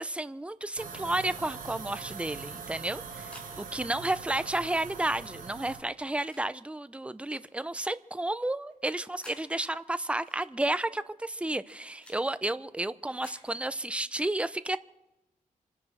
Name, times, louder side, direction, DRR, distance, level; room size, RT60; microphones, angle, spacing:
voice 1, 0.0-14.8, right 1 dB, 10° right, 0.6 m, -32 dB
sound 1, 0.7-5.8, right 5 dB, 80° right, 4.8 m, -42 dB
sound 2, 3.1-3.5 4.6-4.8 5.9-6.5 7.3-7.5 8.7-9.4 10.3-10.4 11.4-12.2 13.0-13.4, equal, 10° left, 6.7 m, -53 dB
26.5 x 9.7 x 4.3 m
cardioid pair, 85°, 14 cm